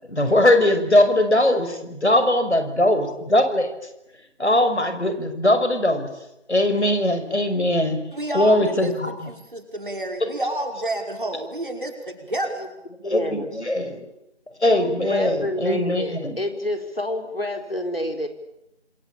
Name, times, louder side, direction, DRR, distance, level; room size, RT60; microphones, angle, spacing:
voice 1, 0.0-3.7 4.4-6.1 6.5-8.0 8.3-9.3 13.0-14.1 14.6-16.4, left 1 dB, 75° left, 8 dB, 5.8 m, -20 dB
voice 2, 8.1-12.7, right 1 dB, 50° right, 4 dB, 5.4 m, -30 dB
voice 3, 13.0-13.5 14.7-18.3, left 1 dB, 60° left, 6 dB, 4.4 m, -28 dB
27.0 x 24.5 x 8.7 m, 0.86 s
figure-of-eight pair, 170°, 34 cm